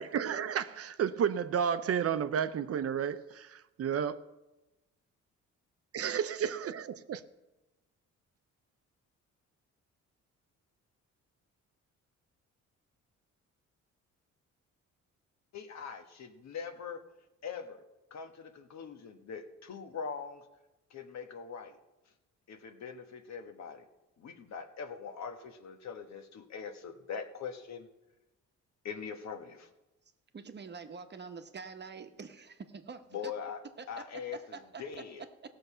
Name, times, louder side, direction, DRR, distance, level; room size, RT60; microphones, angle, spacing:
voice 1, 0.0-4.2 5.9-7.2, right 8 dB, 50° right, 0.6 m, -32 dB
voice 2, 15.5-17.0 17.4-17.8 18.1-20.4 20.9-21.8 22.5-23.9 24.2-27.9 28.8-29.7 33.1-33.6 33.9-35.3, left 6 dB, 65° left, 1.3 m, -42 dB
voice 3, 30.3-33.3 33.8-34.0 34.5-34.8, right 5 dB, 35° right, 1.0 m, -45 dB
17.0 x 6.7 x 5.5 m
cardioid pair, 90°, 30 cm